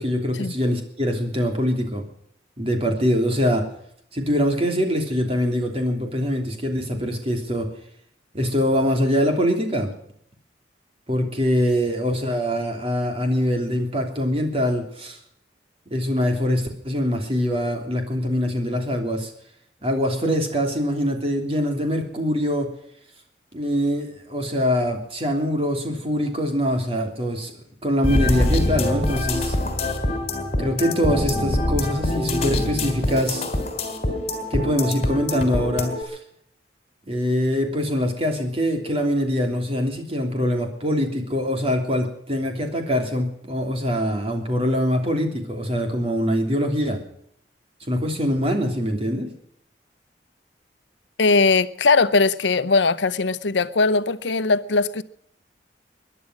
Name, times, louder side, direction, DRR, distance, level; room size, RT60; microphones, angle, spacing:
voice 1, 0.0-2.0 2.6-3.7 4.1-7.7 8.3-9.9 11.1-15.2 15.9-19.3 19.8-22.7 23.5-27.5 27.8-29.5 30.6-33.5 34.5-36.2 37.1-47.0 47.9-49.3, equal, 30° right, 3.1 m, -23 dB
sound 1, 28.0-36.0, left 1 dB, 35° left, 3.3 m, -24 dB
voice 2, 51.2-55.0, left 3 dB, 85° left, 0.8 m, -20 dB
21.0 x 11.0 x 6.2 m
head